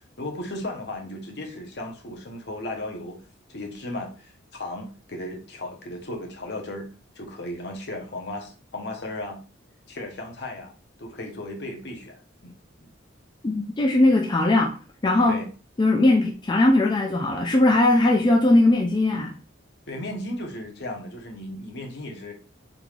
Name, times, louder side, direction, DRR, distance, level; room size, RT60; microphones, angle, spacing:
voice 1, 0.2-3.2 3.5-6.9 7.1-9.4 9.9-10.7 11.0-12.5 12.8-12.9 15.3-15.5 19.9-22.3, left 1 dB, 55° left, 2 dB, 0.8 m, -35 dB
voice 2, 13.4-14.8 15.0-15.4 15.8-19.3, left 2 dB, 25° left, 0 dB, 0.3 m, -19 dB
3.7 x 3.1 x 2.4 m, 0.36 s
head